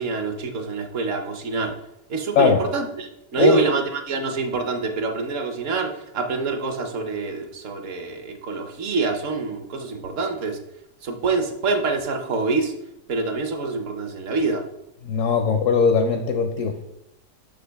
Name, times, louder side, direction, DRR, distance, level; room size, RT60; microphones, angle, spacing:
voice 1, 0.0-1.7 2.1-10.6 11.0-12.7 13.1-14.6, right 4 dB, 55° right, 5 dB, 1.0 m, -26 dB
voice 2, 15.0-16.9, left 5 dB, 70° left, 5 dB, 0.7 m, -20 dB
5.9 x 5.1 x 3.4 m, 0.82 s
omnidirectional pair, 1.8 m